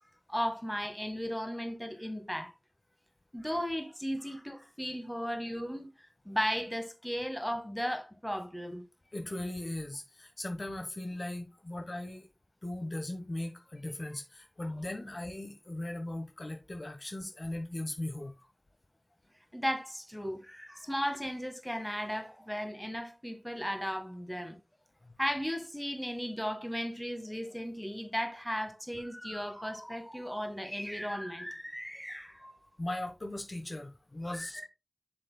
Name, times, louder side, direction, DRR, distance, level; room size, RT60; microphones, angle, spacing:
voice 1, 0.3-2.5 3.3-5.9 6.2-8.8 15.0-15.1 19.5-24.6 25.2-32.6 34.4-34.7, equal, 5° left, 1.5 m, -36 dB
voice 2, 9.1-12.3 12.6-18.5 25.0-25.2 32.8-34.7, left 1 dB, 50° left, 1.1 m, -38 dB
7.5 x 7.0 x 2.2 m
wide cardioid pair, 55°, 0 cm